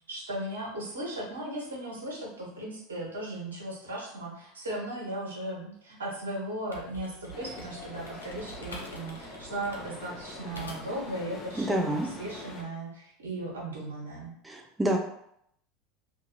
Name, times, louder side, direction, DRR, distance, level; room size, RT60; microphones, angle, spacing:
voice 1, 0.1-14.3, right 1 dB, 80° right, -3 dB, 0.8 m, -37 dB
sound 1, 6.6-11.1, right 1 dB, 85° left, 0.5 m, -46 dB
sound 2, 7.3-12.6, left 2 dB, 35° left, 0.6 m, -44 dB
voice 2, 11.6-12.1 14.4-15.0, right 1 dB, 10° right, 1 dB, 0.4 m, -27 dB
2.5 x 2.3 x 3.0 m, 0.72 s
figure-of-eight pair, 80°, 0 cm